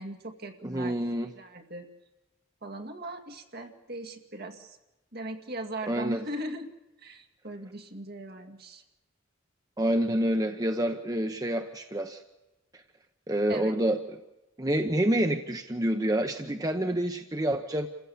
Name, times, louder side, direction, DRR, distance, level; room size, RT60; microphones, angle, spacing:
voice 1, 0.0-1.9 2.6-4.8 5.1-6.7 7.0-8.8 13.5-13.7, right 1 dB, 50° right, 5 dB, 2.1 m, -39 dB
voice 2, 0.6-1.3 5.9-6.2 9.8-12.2 12.7-12.8 13.3-14.2 14.6-17.9, right 1 dB, 20° right, 6 dB, 0.8 m, -28 dB
27.5 x 15.5 x 8.5 m, 0.99 s
head